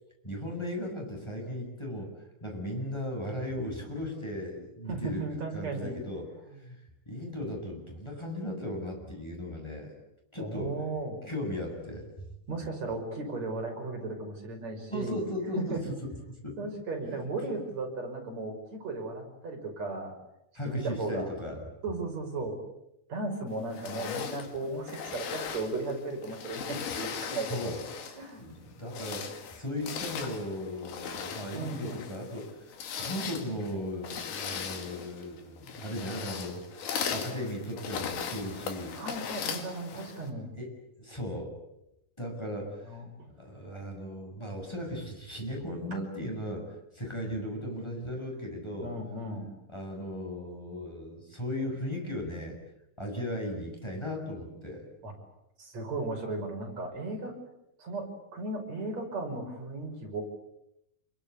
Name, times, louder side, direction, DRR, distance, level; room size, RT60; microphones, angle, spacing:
voice 1, 0.2-6.3 6.6-6.8 7.1-9.9 10.3-10.8 11.3-12.0 14.9-15.8 16.4-16.6 17.1-17.2 20.5-21.6 27.4-27.8 28.4-32.7 33.0-39.0 40.6-40.7 41.0-41.6 42.2-42.8 43.4-46.7 46.9-48.9 49.7-52.6 53.0-54.8, left 1 dB, 5° left, 2 dB, 7.3 m, -37 dB
voice 2, 4.9-6.0 6.5-6.6 10.4-11.2 12.5-15.3 15.6-15.8 16.6-20.1 20.6-21.3 21.8-22.6 23.1-27.7 28.2-28.6 31.5-32.1 38.9-40.5 42.8-43.3 48.8-49.5 55.0-55.1 55.6-57.3 57.8-60.2, right 2 dB, 45° right, 2 dB, 6.7 m, -36 dB
sound 1, 23.7-28.3 28.8-40.3, left 7 dB, 75° left, 4.2 m, -38 dB
28.5 x 23.0 x 8.5 m, 0.84 s
omnidirectional pair, 4.5 m